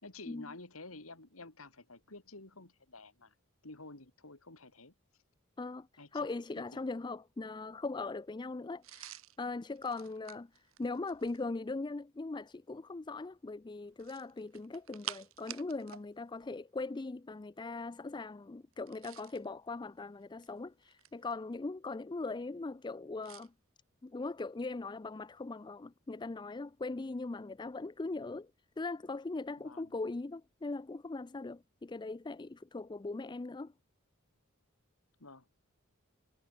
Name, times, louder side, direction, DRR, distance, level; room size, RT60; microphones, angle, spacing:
voice 1, 0.0-3.3 3.6-4.9 6.0-6.3 6.6-6.9 29.6-30.0 35.2-35.5, left 2 dB, 90° left, 3.8 m, -51 dB
voice 2, 6.1-23.5 24.0-28.5 28.8-33.7, left 3 dB, 20° left, 0.4 m, -40 dB
sound 1, 8.8-11.5 13.9-16.1 16.3-16.5 18.7-19.5 20.2-21.3 23.2-23.5, right 12 dB, 75° right, 1.1 m, -49 dB
head